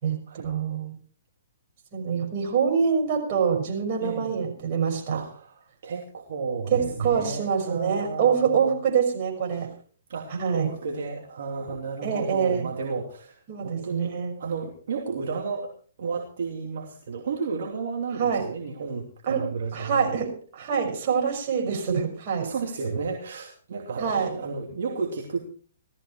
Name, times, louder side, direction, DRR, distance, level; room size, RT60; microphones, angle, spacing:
voice 1, 0.0-1.0 1.9-5.2 6.7-9.7 10.4-10.7 12.0-12.7 13.5-14.4 18.2-18.5 19.3-19.4 19.7-22.5 24.0-24.3, right 6 dB, 40° right, 0 dB, 6.2 m, -25 dB
voice 2, 4.0-4.4 5.1-8.7 10.1-14.1 14.4-15.7 16.0-20.1 22.4-25.4, right 4 dB, 60° right, 1 dB, 2.7 m, -33 dB
17.5 x 13.5 x 4.5 m, 0.44 s
hypercardioid pair, 130°, 0 cm